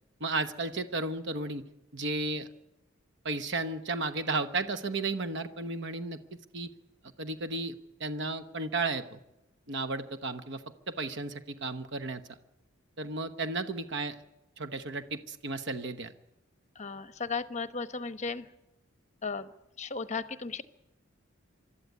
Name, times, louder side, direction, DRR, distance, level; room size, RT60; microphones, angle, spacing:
voice 1, 0.2-1.6 1.9-2.5 3.2-6.2 6.5-6.7 7.2-7.7 8.0-9.2 9.7-12.4 13.0-14.2 14.6-16.1, right 3 dB, 60° right, 10 dB, 1.1 m, -33 dB
voice 2, 16.8-18.5 19.2-19.5 19.8-20.6, left 4 dB, 35° left, 12 dB, 1.0 m, -35 dB
25.0 x 13.0 x 9.5 m, 0.92 s
head